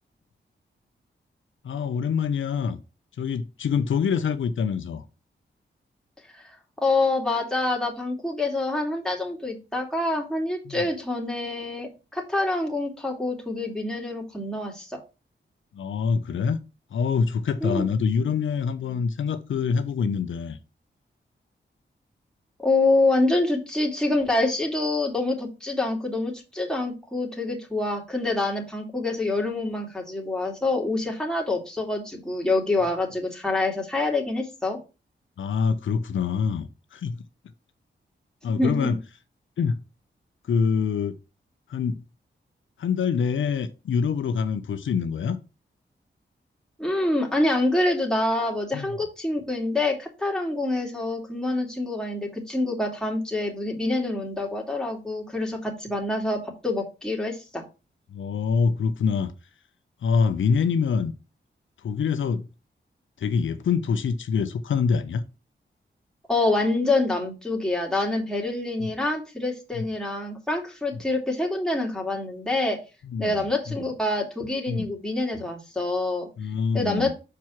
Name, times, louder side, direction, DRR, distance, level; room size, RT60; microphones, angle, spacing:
voice 1, 1.6-2.8 3.2-5.0 10.7-10.9 15.7-16.6 16.9-20.6 35.4-36.7 36.9-37.2 38.4-39.0 39.6-39.8 40.5-41.2 41.7-42.0 42.8-45.4 48.7-48.9 58.1-59.3 60.0-61.1 61.8-62.4 63.2-65.2 68.8-68.9 69.7-69.9 73.0-73.8 74.7-74.9 76.4-77.1, left 6 dB, 90° left, 0.7 m, -25 dB
voice 2, 6.8-15.0 17.6-17.8 22.6-34.8 38.5-38.9 46.8-57.6 66.3-72.8 73.2-76.3 76.7-77.1, left 2 dB, 5° left, 2.6 m, -26 dB
6.1 x 4.6 x 5.9 m
wide cardioid pair, 100°, 19 cm